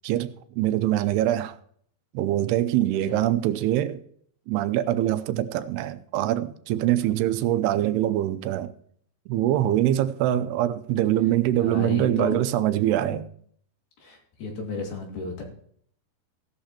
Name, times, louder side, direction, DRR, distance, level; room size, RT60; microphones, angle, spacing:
voice 1, 0.0-1.6 2.1-4.0 4.5-8.7 9.3-13.3, right 13 dB, 90° right, 2.7 m, -24 dB
voice 2, 11.5-12.4 13.0-13.3 14.0-15.4, left 3 dB, 70° left, 4.1 m, -33 dB
16.0 x 11.5 x 3.0 m
omnidirectional pair, 4.6 m